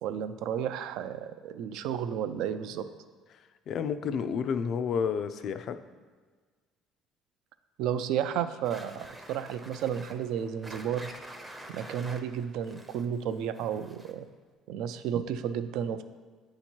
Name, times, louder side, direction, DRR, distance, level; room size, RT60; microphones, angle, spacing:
voice 1, 0.0-2.9 7.8-11.1 11.7-14.3 14.7-16.0, right 9 dB, 75° right, 11 dB, 0.3 m, -32 dB
voice 2, 3.7-5.8, left 6 dB, 50° left, 11 dB, 0.3 m, -30 dB
sound 1, 8.6-14.3, right 1 dB, 10° right, 0.5 m, -47 dB
8.5 x 2.8 x 4.4 m, 1.5 s
cardioid pair, 135°, 0 cm